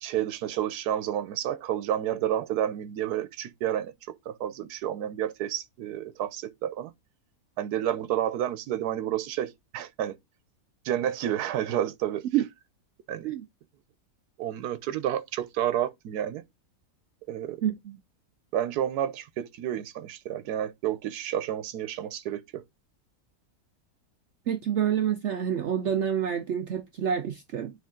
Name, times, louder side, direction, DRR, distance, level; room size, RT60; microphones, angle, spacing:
voice 1, 0.0-3.9 4.3-6.9 7.6-10.2 10.8-12.2 13.1-13.3 14.4-16.4 17.3-17.6 18.5-22.6, right 11 dB, 85° right, 1.2 m, -30 dB
voice 2, 17.6-18.0 24.5-27.7, right 9 dB, 70° right, 0.7 m, -27 dB
9.5 x 3.3 x 3.7 m
omnidirectional pair, 1.6 m